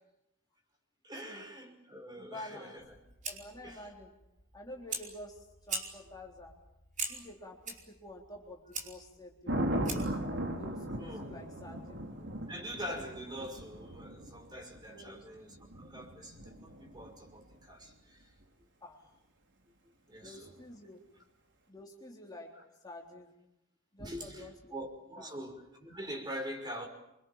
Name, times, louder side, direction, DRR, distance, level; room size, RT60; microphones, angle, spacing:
voice 1, 1.0-2.9 3.6-3.9 11.0-11.2 12.4-15.5 15.7-18.3 18.6-18.7 20.1-20.5 22.6-22.7 24.0-26.9, equal, 20° right, 3 dB, 5.9 m, -44 dB
voice 2, 2.2-2.7 3.3-4.1 4.5-6.5 7.1-10.1 10.6-12.0 14.9-15.3 18.8-19.1 20.2-21.0 21.7-22.5 22.8-23.3 23.9-24.7 25.2-25.4, left 1 dB, 20° left, -1 dB, 3.7 m, -49 dB
Fire, 2.8-10.3, right 4 dB, 40° right, 4.9 m, -43 dB
Thunder, 9.5-17.5 20.2-20.6, right 1 dB, 60° right, 4.5 m, -38 dB
28.5 x 25.0 x 7.4 m, 0.87 s
head